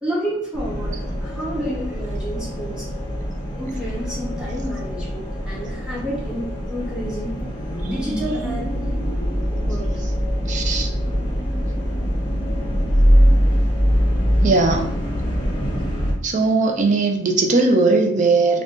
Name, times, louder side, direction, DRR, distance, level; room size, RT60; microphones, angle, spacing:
voice 1, 0.0-2.9 3.6-7.4 7.7-8.9 9.6-10.0, equal, 5° right, -6 dB, 1.0 m, -30 dB
sound 1, 0.5-16.1, equal, 25° left, 0.7 m, -22 dB
voice 2, 10.5-10.9 14.4-15.0 16.2-18.6, right 3 dB, 40° right, 4 dB, 0.4 m, -18 dB
2.5 x 2.2 x 3.6 m, 0.74 s
head